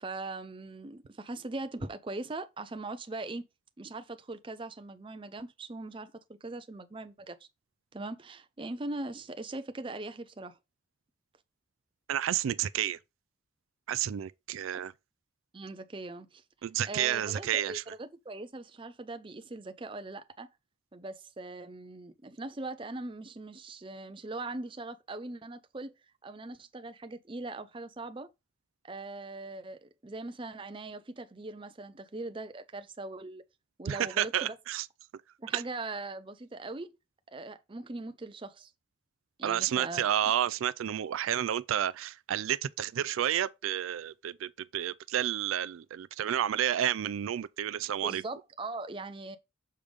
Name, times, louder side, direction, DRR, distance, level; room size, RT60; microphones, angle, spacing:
voice 1, 0.0-3.4 3.8-6.1 6.4-7.4 7.9-10.6 15.5-16.4 16.9-20.5 20.9-25.9 26.2-28.3 28.8-33.4 33.8-34.6 35.4-36.9 37.3-38.7 39.4-40.1 48.0-49.4, right 2 dB, 25° right, 0.5 m, -40 dB
voice 2, 12.1-13.0 13.9-14.9 16.6-17.8 33.9-34.9 35.5-35.6 39.4-48.2, right 10 dB, 80° right, 0.3 m, -30 dB
6.6 x 3.5 x 5.1 m
head